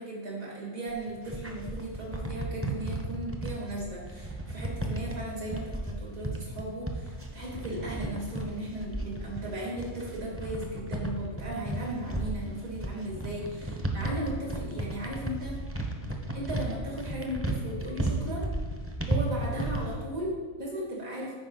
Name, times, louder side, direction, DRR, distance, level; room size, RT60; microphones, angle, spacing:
voice 1, 0.0-15.6 16.3-18.5 19.1-21.4, right 1 dB, 75° right, -3 dB, 2.7 m, -36 dB
sound 1, 0.9-20.0, right 1 dB, 15° right, 0.5 m, -34 dB
9.9 x 4.7 x 3.9 m, 1.5 s
omnidirectional pair, 1.4 m